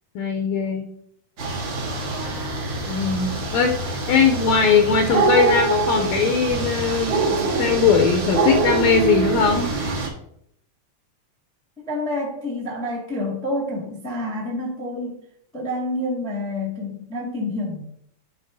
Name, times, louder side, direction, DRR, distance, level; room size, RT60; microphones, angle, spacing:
voice 1, 0.2-0.9 2.9-3.8 4.1-9.7, left 5 dB, 75° left, 3 dB, 1.8 m, -20 dB
sound 1, 1.4-10.1, right 3 dB, 50° right, 1.7 m, -24 dB
voice 2, 11.8-15.2 15.5-17.9, left 1 dB, ahead, -2 dB, 1.0 m, -28 dB
11.5 x 4.7 x 2.6 m, 0.71 s
omnidirectional pair, 3.3 m